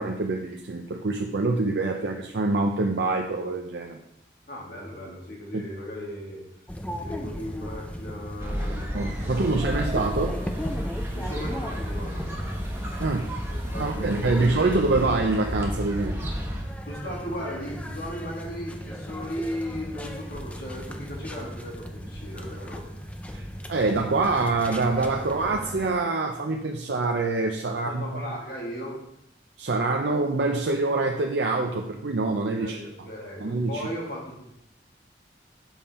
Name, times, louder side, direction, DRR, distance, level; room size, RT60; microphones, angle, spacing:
voice 1, 0.0-4.0 5.5-5.6 8.9-10.3 13.0-13.3 13.8-16.3 23.3-28.1 29.6-33.1 33.4-33.9, right 3 dB, 75° right, 2 dB, 0.6 m, -25 dB
voice 2, 4.5-6.4 7.0-10.5 11.1-12.6 13.5-14.7 15.0-15.1 16.9-22.9 27.7-29.0 32.6-34.5, equal, 55° left, -3 dB, 2.2 m, -37 dB
sound 1, 6.7-25.9, equal, 10° left, 0.5 m, -37 dB
sound 2, 8.4-16.6, equal, 15° right, 1.0 m, -32 dB
7.3 x 5.6 x 4.3 m, 0.81 s
head